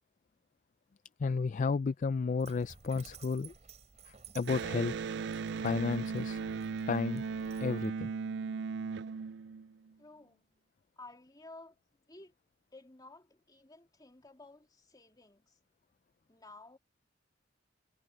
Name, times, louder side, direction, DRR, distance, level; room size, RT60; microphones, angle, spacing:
voice 1, 1.2-3.5 4.1-4.9 5.6-6.4 6.9-7.2 7.6-8.1, left 4 dB, 40° left, 0.4 m, -32 dB
Dog, 2.4-7.9, right 5 dB, 40° right, 3.7 m, -55 dB
Electric guitar, 4.4-9.9, right 5 dB, 65° right, 0.4 m, -37 dB
voice 2, 10.0-10.4 11.0-11.8 12.1-12.3 12.7-15.6 16.3-16.8, left 2 dB, 20° left, 2.7 m, -54 dB
head